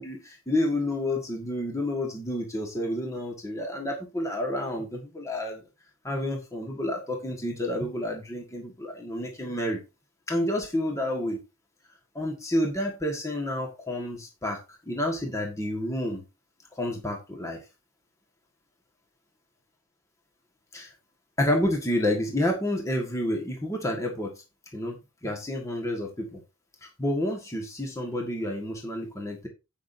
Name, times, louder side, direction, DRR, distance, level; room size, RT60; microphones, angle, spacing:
voice 1, 0.0-5.6 6.0-9.8 10.3-11.4 12.1-16.2 16.7-17.6 20.7-20.9 21.4-24.3 24.7-26.4 27.0-29.5, left 1 dB, 15° left, 1 dB, 1.6 m, -29 dB
16.0 x 5.9 x 2.7 m, 0.27 s
head